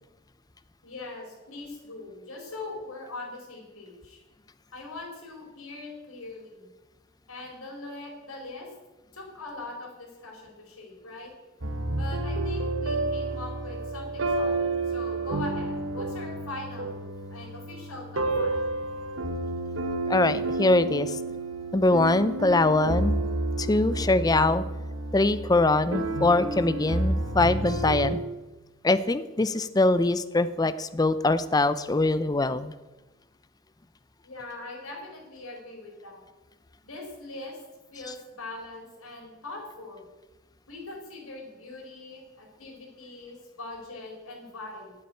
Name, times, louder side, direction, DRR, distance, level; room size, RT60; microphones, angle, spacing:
voice 1, 0.8-4.2 4.7-6.7 7.3-8.7 9.1-11.3 11.9-16.9 17.3-18.7 34.2-36.2 36.8-37.6 37.9-40.0 40.7-44.9, left 2 dB, 90° left, 0 dB, 4.3 m, -41 dB
sound 1, 11.6-28.2, right 2 dB, 65° right, 1.2 m, -30 dB
voice 2, 20.1-21.2 21.7-23.2 23.6-24.6 25.1-28.2 28.8-32.7, left 2 dB, 20° left, 13 dB, 0.4 m, -23 dB
8.7 x 8.6 x 8.9 m, 1.1 s
head